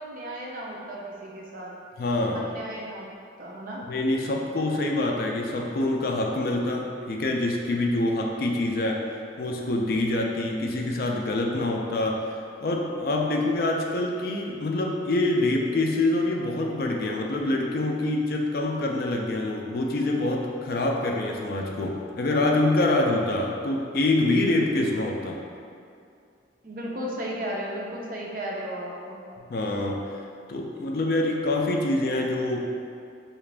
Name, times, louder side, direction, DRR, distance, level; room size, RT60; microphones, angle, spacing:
voice 1, 0.0-1.7 2.3-3.1 3.4-3.8 26.6-29.2, right 1 dB, 45° right, -3 dB, 0.5 m, -35 dB
voice 2, 2.0-2.5 3.9-9.0 9.4-12.2 12.6-25.4 29.5-30.1 30.5-32.7, left 2 dB, 50° left, 0 dB, 0.3 m, -25 dB
3.9 x 2.4 x 3.3 m, 2.5 s
head